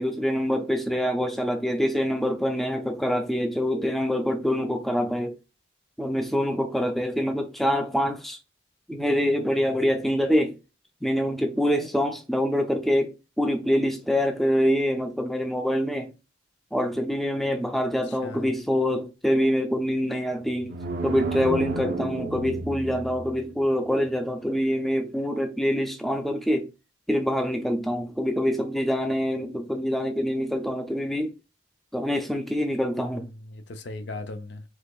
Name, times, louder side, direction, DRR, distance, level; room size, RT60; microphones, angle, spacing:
voice 1, 0.0-5.3 6.0-8.4 8.9-10.6 11.0-16.1 16.7-20.7 21.0-26.7 27.1-31.3 31.9-33.3, equal, ahead, 0.4 m, -25 dB
voice 2, 18.1-18.5 33.0-34.6, left 2 dB, 60° left, 0.5 m, -38 dB
sound 1, 20.5-23.6, right 2 dB, 50° right, 0.5 m, -32 dB
4.0 x 3.0 x 2.3 m
head